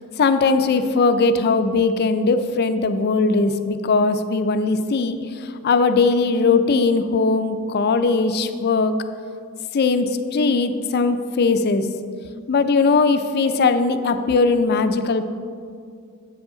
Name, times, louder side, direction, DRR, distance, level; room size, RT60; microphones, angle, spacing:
voice 1, 0.2-8.9 9.7-11.9 12.5-15.3, left 4 dB, 50° left, 10 dB, 0.4 m, -19 dB
8.1 x 7.1 x 3.8 m, 2.2 s
head